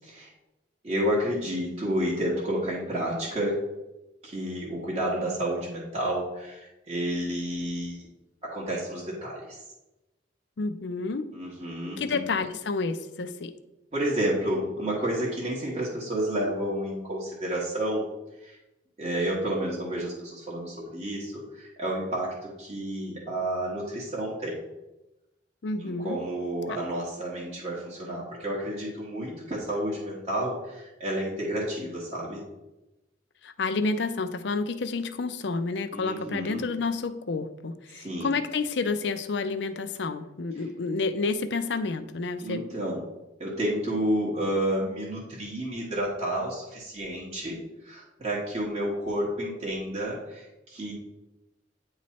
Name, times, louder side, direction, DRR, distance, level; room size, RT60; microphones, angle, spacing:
voice 1, 0.8-3.6 4.2-8.1 8.4-9.6 11.3-12.3 13.9-18.1 18.4-18.6 19.0-24.6 25.8-32.4 35.9-36.6 37.9-38.3 42.4-43.0 43.4-50.9, right 1 dB, 35° right, -6 dB, 1.3 m, -30 dB
voice 2, 10.6-11.2 12.0-13.5 25.6-26.2 26.7-26.8 33.4-42.6, left 4 dB, 70° left, 10 dB, 0.5 m, -30 dB
9.3 x 3.2 x 4.2 m, 0.98 s
head